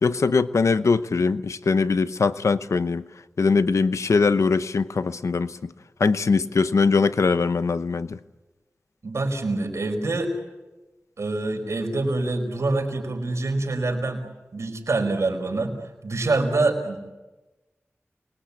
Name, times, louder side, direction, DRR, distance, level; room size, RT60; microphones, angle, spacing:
voice 1, 0.0-3.0 3.4-5.7 6.0-8.2, left 4 dB, 80° left, 13 dB, 0.9 m, -21 dB
voice 2, 9.0-10.3 11.2-14.2 14.5-15.7 16.0-17.0, right 2 dB, 75° right, 3 dB, 5.1 m, -25 dB
29.5 x 21.5 x 8.6 m, 1.1 s
cardioid pair, 45°, 5 cm